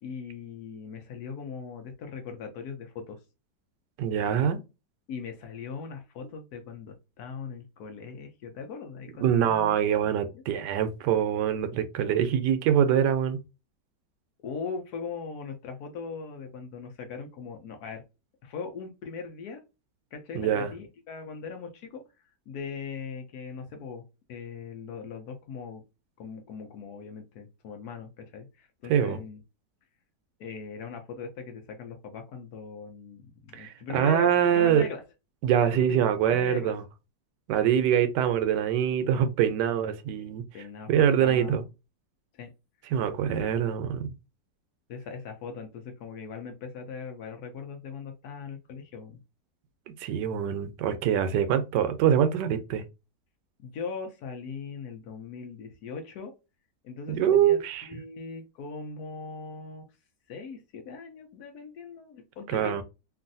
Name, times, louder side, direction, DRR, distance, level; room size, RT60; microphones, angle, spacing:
voice 1, 0.0-3.2 5.1-10.4 14.4-18.0 18.4-19.6 20.1-24.0 24.3-25.8 26.2-29.4 30.4-35.0 35.6-36.7 40.2-41.6 42.3-42.5 43.2-43.7 44.9-49.2 53.6-56.3 56.8-59.9 60.3-62.8, left 5 dB, 70° left, 1.1 m, -40 dB
voice 2, 4.0-4.6 9.2-13.4 20.3-20.7 28.9-29.2 33.5-34.9 35.4-36.8 37.5-40.4 40.9-41.6 42.9-44.1 50.0-52.8 57.1-57.8 62.5-62.8, right 9 dB, 75° right, 1.2 m, -24 dB
3.0 x 2.5 x 2.5 m
omnidirectional pair, 1.9 m